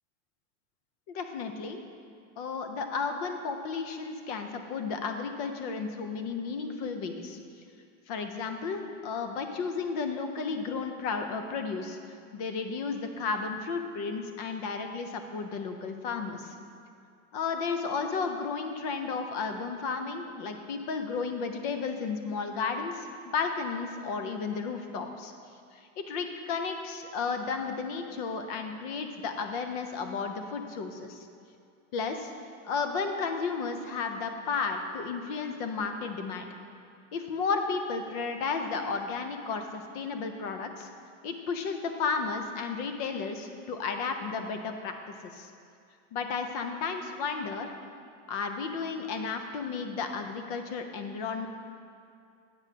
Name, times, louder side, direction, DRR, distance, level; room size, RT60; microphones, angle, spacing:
voice 1, 1.1-1.8 2.4-7.4 8.1-12.0 12.3-16.5 17.3-23.1 23.3-25.3 25.7-31.3 31.9-32.3 32.6-36.5 37.1-40.9 41.2-44.9 45.2-45.5 46.1-47.7 48.3-51.5, left 5 dB, 30° left, 6 dB, 0.4 m, -33 dB
8.9 x 4.2 x 6.0 m, 2.4 s
supercardioid pair, 170°, 38 cm